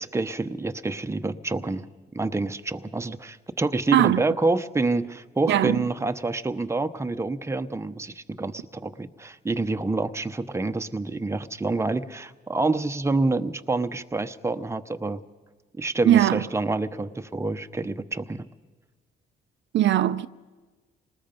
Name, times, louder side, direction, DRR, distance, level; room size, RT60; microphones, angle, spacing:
voice 1, 0.0-1.9 2.1-15.2 15.8-18.5, right 3 dB, 15° right, 0.8 m, -27 dB
voice 2, 5.5-5.8 16.1-16.4 19.7-20.3, right 12 dB, 65° right, 0.5 m, -19 dB
27.0 x 19.5 x 5.3 m
cardioid pair, 90°, 20 cm